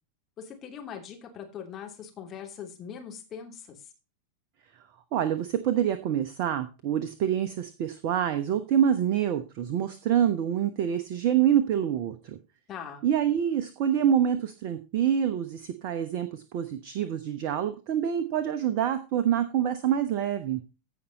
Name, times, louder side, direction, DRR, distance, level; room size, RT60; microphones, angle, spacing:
voice 1, 0.4-3.8 12.7-13.0, left 7 dB, 30° left, 3 dB, 2.9 m, -41 dB
voice 2, 5.1-12.4 13.0-20.6, right 9 dB, 45° right, 11 dB, 1.0 m, -26 dB
15.5 x 5.7 x 4.1 m, 0.30 s
figure-of-eight pair, 90°, 0 cm